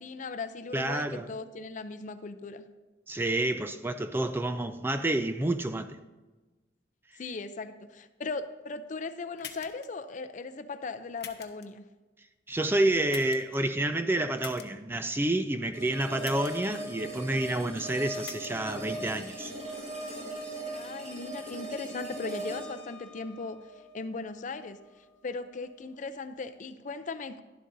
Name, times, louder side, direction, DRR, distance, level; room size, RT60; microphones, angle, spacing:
voice 1, 0.0-2.7 7.2-11.9 20.7-23.6 23.9-24.8 25.2-27.4, left 3 dB, 45° left, 0.5 m, -38 dB
voice 2, 0.7-1.3 3.1-6.0 12.5-19.5, right 1 dB, 15° right, 0.4 m, -29 dB
sound 1, 9.4-9.9 11.2-11.7 13.1-13.6 14.4-14.7 16.2-16.7 18.1-18.5, left 9 dB, 65° left, 0.8 m, -43 dB
sound 2, 15.7-24.8, right 1 dB, 40° right, 3.5 m, -39 dB
11.5 x 11.5 x 2.7 m
head